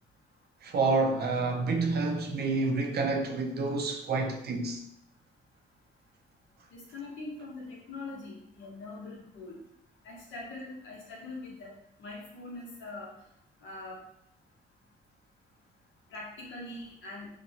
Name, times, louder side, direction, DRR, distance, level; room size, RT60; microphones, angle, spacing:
voice 1, 0.6-4.8, right 3 dB, 55° right, 0.5 m, -28 dB
voice 2, 6.7-9.6 10.0-11.7 12.0-13.1 13.6-14.0 16.1-17.3, left 2 dB, 75° left, 1.0 m, -42 dB
2.8 x 2.2 x 2.7 m
cardioid pair, 90°, 20 cm